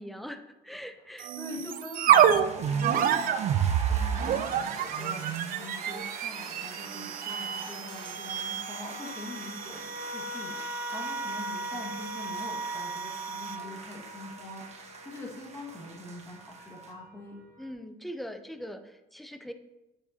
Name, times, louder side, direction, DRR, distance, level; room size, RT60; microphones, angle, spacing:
voice 1, 0.0-1.3 17.6-19.5, equal, ahead, 8 dB, 0.5 m, -41 dB
sound 1, 1.2-13.7, right 9 dB, 55° right, 0.5 m, -29 dB
voice 2, 1.3-17.4, left 2 dB, 15° left, -3 dB, 1.7 m, -44 dB
sound 2, 2.3-16.9, right 4 dB, 40° right, 1.3 m, -43 dB
sound 3, 6.3-17.7, right 1 dB, 15° right, 2.1 m, -41 dB
7.4 x 7.2 x 2.8 m, 0.97 s
cardioid pair, 110°, 17 cm